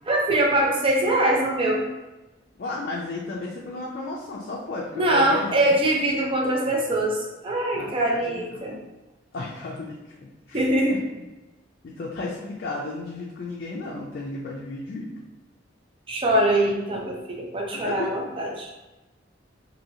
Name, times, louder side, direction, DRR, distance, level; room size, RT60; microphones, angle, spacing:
voice 1, 0.0-1.9 4.9-8.8 10.5-11.0 16.1-18.7, right 1 dB, 30° right, -1 dB, 0.5 m, -23 dB
voice 2, 2.6-5.7 7.7-8.2 8.5-8.7 9.3-10.0 10.5-10.6 10.9-11.0 11.8-15.1 17.7-18.1, left 3 dB, 55° left, -3 dB, 0.4 m, -33 dB
2.9 x 2.7 x 2.7 m, 1.1 s
head